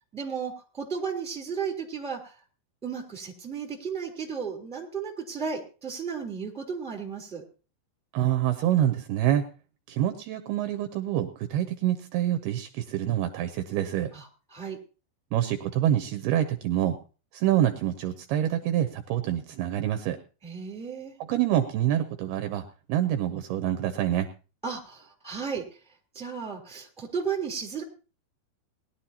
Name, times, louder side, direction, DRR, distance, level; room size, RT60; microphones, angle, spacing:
voice 1, 0.1-2.4 2.8-7.4 14.1-14.8 20.4-21.1 24.6-27.8, right 6 dB, ahead, 1 dB, 2.5 m, -34 dB
voice 2, 8.1-9.4 9.9-14.1 15.3-17.0 17.3-20.2 21.3-22.6 22.9-24.3, right 12 dB, 75° right, 8 dB, 2.5 m, -26 dB
20.5 x 11.5 x 2.9 m, 0.35 s
omnidirectional pair, 5.1 m